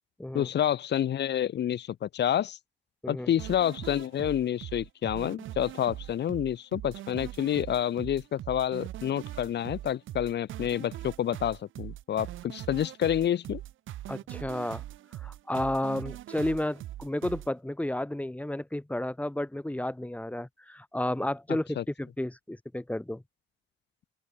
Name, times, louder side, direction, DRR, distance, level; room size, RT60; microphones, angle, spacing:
voice 1, 0.3-2.6 3.1-13.6 21.8-21.9, left 10 dB, 60° left, 1.1 m, -28 dB
sound 1, 3.4-17.5, right 13 dB, 80° right, 1.8 m, -41 dB
voice 2, 14.1-14.8 15.2-23.2, left 1 dB, 5° left, 4.1 m, -32 dB
open air
cardioid pair, 90°, 20 cm